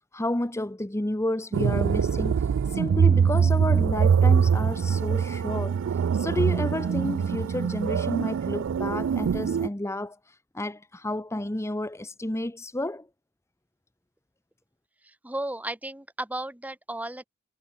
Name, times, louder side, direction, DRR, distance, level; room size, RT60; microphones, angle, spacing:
voice 1, 0.1-2.3 2.7-5.8 6.1-13.1, left 1 dB, 15° left, 1.0 m, -31 dB
sound 1, 1.5-9.7, right 7 dB, 65° right, 0.3 m, -23 dB
voice 2, 15.0-17.3, right 1 dB, 5° right, 1.3 m, -34 dB
head